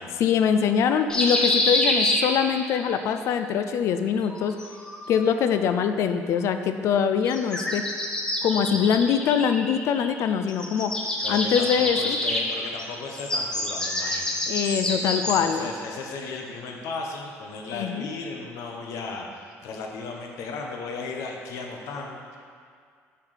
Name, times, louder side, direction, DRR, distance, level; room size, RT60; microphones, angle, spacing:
voice 1, 0.2-4.6 5.1-7.9 8.4-10.9 11.3-12.2 14.5-15.7 17.7-18.1, left 7 dB, 60° left, 8 dB, 0.4 m, -23 dB
sound 1, 1.1-2.8 4.2-5.3 7.2-10.2 10.5-15.7, left 1 dB, 15° left, 0.7 m, -27 dB
voice 2, 11.2-22.4, left 4 dB, 75° left, 1 dB, 0.9 m, -36 dB
7.2 x 4.6 x 4.9 m, 2.2 s
cardioid pair, 160°, 6 cm